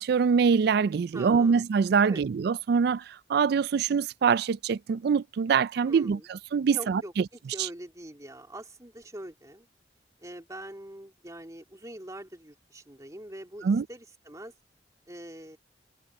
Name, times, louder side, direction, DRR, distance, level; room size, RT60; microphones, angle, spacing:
voice 1, 0.0-7.2 7.6-7.7 13.6-13.8, right 6 dB, 60° right, 0.3 m, -24 dB
voice 2, 1.1-1.6 2.0-2.2 5.8-6.3 6.7-7.1 7.5-9.7 10.2-14.5 15.1-15.6, right 1 dB, 20° right, 2.5 m, -43 dB
head